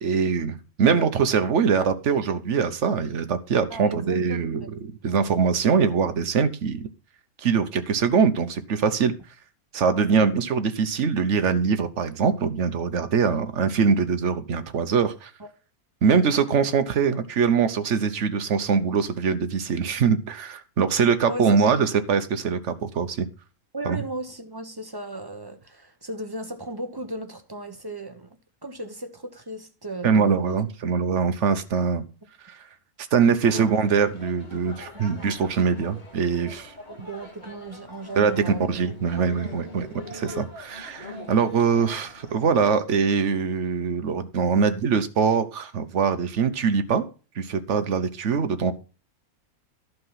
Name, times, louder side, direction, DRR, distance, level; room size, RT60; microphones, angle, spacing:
voice 1, 0.0-6.9 7.4-9.1 9.7-15.3 16.0-23.3 23.8-24.0 30.0-32.0 32.5-32.6 33.1-36.7 38.1-47.1 47.4-48.7, right 6 dB, 55° right, 1.2 m, -23 dB
voice 2, 3.7-4.7 5.1-5.4 9.9-10.1 15.4-15.5 21.3-21.7 23.7-28.3 28.6-30.6 33.5-33.6 36.9-38.7, right 1 dB, 20° right, 0.9 m, -36 dB
sound 1, 33.4-42.4, left 2 dB, 30° left, 2.5 m, -43 dB
11.5 x 5.8 x 5.6 m
omnidirectional pair, 1.6 m